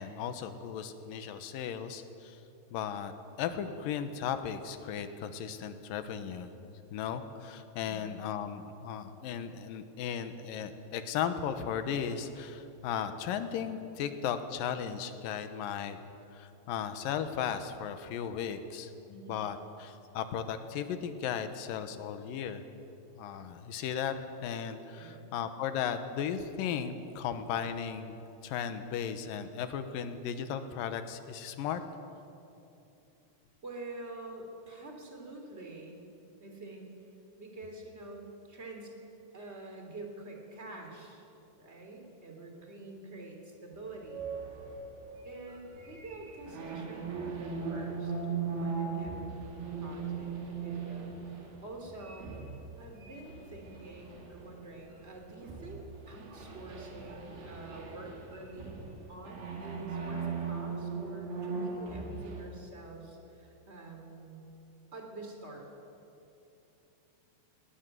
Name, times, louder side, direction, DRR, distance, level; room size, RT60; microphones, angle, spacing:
voice 1, 0.0-2.4 2.7-3.1 3.4-6.5 6.9-16.0 16.3-18.9 19.3-22.6 23.1-24.1 24.4-28.2 28.4-31.8, left 8 dB, 70° left, 9 dB, 2.3 m, -36 dB
voice 2, 24.9-25.3 33.6-36.0 36.4-36.9 37.4-38.9 39.3-41.2 41.6-44.3 45.2-50.3 50.6-52.3 52.8-58.8 59.1-64.4 64.9-65.7, right 2 dB, 15° right, 2 dB, 2.8 m, -47 dB
sound 1, 44.0-55.1 55.4-62.4, right 5 dB, 80° right, 5.4 m, -39 dB
19.0 x 19.0 x 9.2 m, 2.8 s
omnidirectional pair, 5.0 m